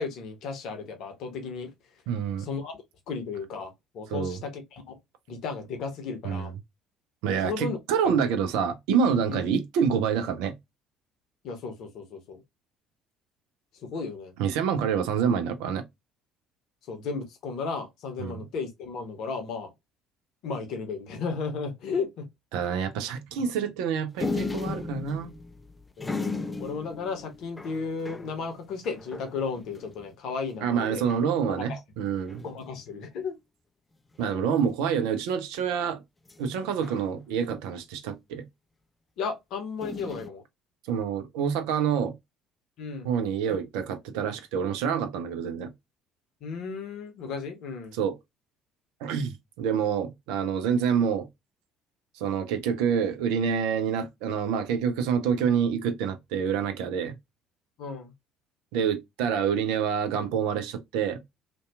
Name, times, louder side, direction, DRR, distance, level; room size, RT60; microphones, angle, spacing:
voice 1, 0.0-1.7 2.4-4.9 5.3-6.5 7.4-7.8 8.0-8.2 9.3-9.4 11.4-12.4 13.8-14.3 16.9-19.7 20.4-22.3 26.0-31.0 31.6-31.8 32.4-33.4 36.8-36.9 39.2-40.4 42.8-43.1 43.5-43.6 46.4-48.0 57.8-58.1, left 5 dB, 55° left, 0.7 m, -34 dB
voice 2, 2.1-2.5 4.1-4.4 6.2-6.4 7.2-10.5 14.4-15.8 18.2-18.3 22.5-25.3 30.6-32.4 34.2-36.0 36.4-38.4 40.9-42.1 43.0-45.7 48.0-48.1 49.0-51.3 52.2-57.1 58.7-61.2, right 7 dB, 65° right, 0.4 m, -27 dB
sound 1, 24.2-30.1 30.5-30.6 30.8-31.3 32.2-32.8 34.1-34.6 36.3-37.6 39.8-40.3, left 3 dB, 15° left, 0.3 m, -36 dB
2.7 x 2.2 x 2.3 m
figure-of-eight pair, 55°, 0 cm